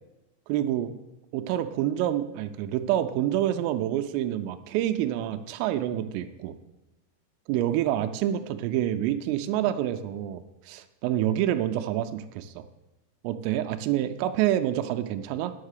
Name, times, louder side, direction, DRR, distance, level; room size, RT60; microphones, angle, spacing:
voice 1, 0.5-1.0 1.3-6.5 7.5-12.6 13.2-15.5, right 12 dB, 85° right, 8 dB, 3.1 m, -27 dB
9.6 x 7.2 x 6.6 m, 1.0 s
omnidirectional pair, 6.0 m